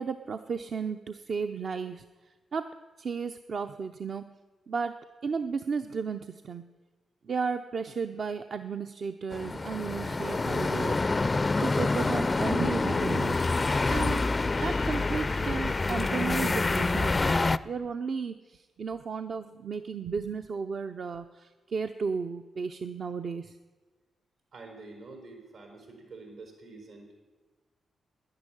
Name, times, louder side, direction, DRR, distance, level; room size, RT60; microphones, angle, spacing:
voice 1, 0.0-2.0 2.5-2.7 3.0-4.3 4.7-4.9 5.2-6.7 7.2-11.2 11.6-13.4 13.9-14.2 14.5-23.6, right 5 dB, 55° right, 7 dB, 0.6 m, -34 dB
sound 1, 9.3-17.6, left 3 dB, 30° left, 0.4 m, -27 dB
sound 2, 13.0-16.2, left 7 dB, 85° left, 0.8 m, -44 dB
voice 2, 24.5-27.2, right 3 dB, 80° right, 3 dB, 4.5 m, -47 dB
11.0 x 10.5 x 9.9 m, 1.3 s
cardioid pair, 75°, 0 cm